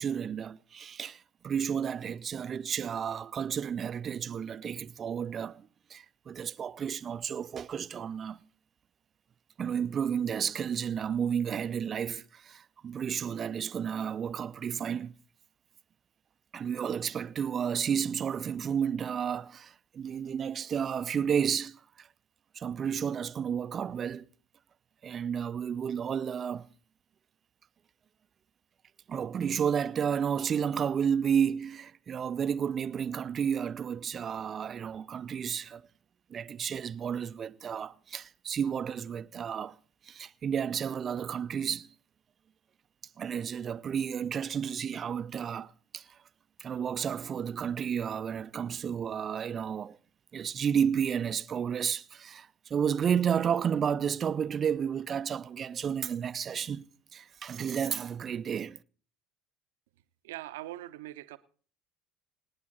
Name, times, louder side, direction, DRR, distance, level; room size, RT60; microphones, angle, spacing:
voice 1, 0.0-8.4 9.6-15.1 16.5-22.1 22.5-24.3 25.0-26.7 29.1-35.9 36.3-39.7 40.0-41.9 43.2-46.2 46.6-50.0 50.3-56.9 57.1-58.8, right 8 dB, 35° right, 0.6 m, -32 dB
voice 2, 60.2-61.4, right 15 dB, 70° right, 0.8 m, -41 dB
26.5 x 9.6 x 4.1 m
figure-of-eight pair, 60°, 0 cm